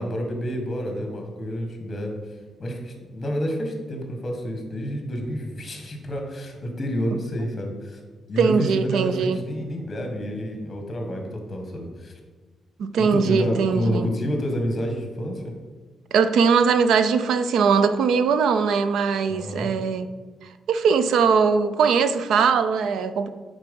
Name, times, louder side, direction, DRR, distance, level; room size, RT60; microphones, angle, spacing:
voice 1, 0.0-2.2 2.6-8.0 8.3-12.2 13.1-15.5 19.3-19.7, equal, 30° left, 2 dB, 1.4 m, -29 dB
voice 2, 8.4-9.4 12.8-14.1 16.1-20.1 20.7-23.3, right 6 dB, 85° right, 11 dB, 0.4 m, -20 dB
9.0 x 4.0 x 5.3 m, 1.4 s
wide cardioid pair, 150°, 0 cm